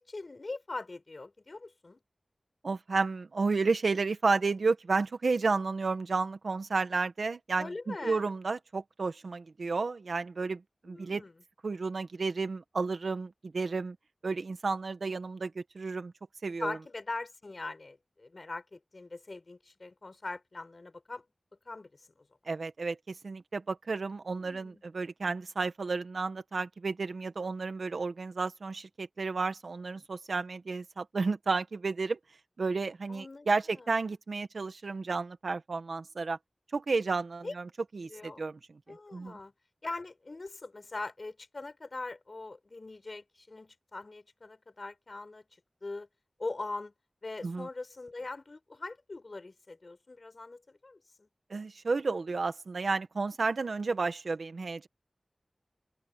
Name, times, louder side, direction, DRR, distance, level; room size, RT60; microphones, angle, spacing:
voice 1, 0.0-2.0 7.6-8.2 10.9-11.3 16.6-21.3 21.7-22.3 24.4-24.8 33.1-34.1 37.4-37.5 38.1-38.4 38.9-39.5 39.8-45.5 45.8-46.1 46.4-46.9 47.2-51.3, left 3 dB, 55° left, 5.3 m, -42 dB
voice 2, 2.6-11.2 11.6-14.0 14.2-16.1 16.4-16.8 22.5-32.2 32.6-36.4 36.7-39.4 47.4-47.7 51.5-54.9, right 4 dB, 85° right, 1.6 m, -32 dB
open air
wide cardioid pair, 60°, 0 cm